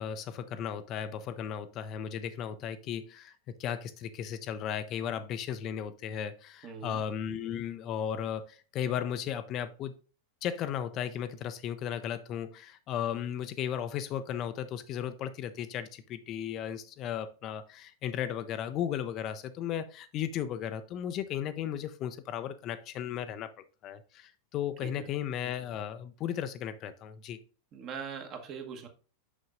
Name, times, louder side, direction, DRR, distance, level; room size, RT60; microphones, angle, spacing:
voice 1, 0.0-3.3 3.6-9.9 10.4-23.5 23.8-27.4, left 9 dB, 35° left, 0.5 m, -35 dB
voice 2, 6.6-7.0 24.8-25.1 27.7-28.9, right 6 dB, 35° right, 1.2 m, -41 dB
6.5 x 6.2 x 2.5 m
figure-of-eight pair, 90°, 0 cm